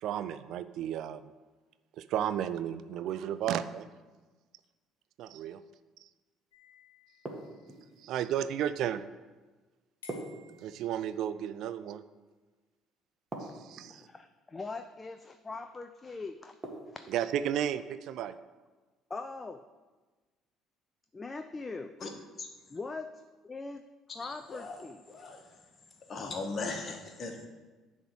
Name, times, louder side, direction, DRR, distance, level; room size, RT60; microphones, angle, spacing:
voice 1, 0.0-1.3 1.9-3.9 5.2-5.6 6.0-6.1 8.0-9.0 10.6-12.0 13.4-14.1 17.1-18.4, right 10 dB, 60° right, 12 dB, 0.4 m, -33 dB
sound 1, 6.5-8.1 10.0-11.6, left 5 dB, 80° left, 1.4 m, -58 dB
sound 2, 7.2-8.0 10.1-11.1 13.3-14.1 16.6-17.3, right 2 dB, 25° right, 1.9 m, -42 dB
voice 2, 13.9-16.5 16.9-17.1 19.1-19.6 21.1-21.9 22.7-23.8 24.1-25.0, left 3 dB, 25° left, 8 dB, 0.5 m, -41 dB
voice 3, 24.2-24.8 25.1-25.4 26.1-27.5, left 3 dB, 40° left, 3 dB, 1.5 m, -38 dB
10.5 x 3.6 x 6.3 m, 1.3 s
hypercardioid pair, 55°, 0 cm